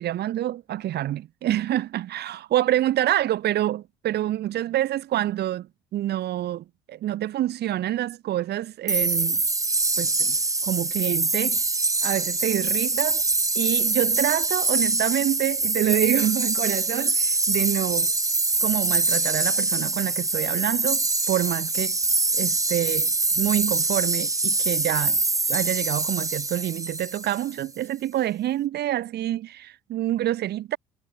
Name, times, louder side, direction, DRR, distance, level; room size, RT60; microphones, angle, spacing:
voice 1, 0.0-9.4 10.0-10.4 10.6-11.6 12.0-13.2 13.6-18.1 18.6-22.0 22.3-23.1 23.3-25.2 25.5-30.8, right 13 dB, 60° right, 7.3 m, -27 dB
sound 1, 8.9-27.6, right 3 dB, 15° right, 2.2 m, -24 dB
hypercardioid pair, 55°, 19 cm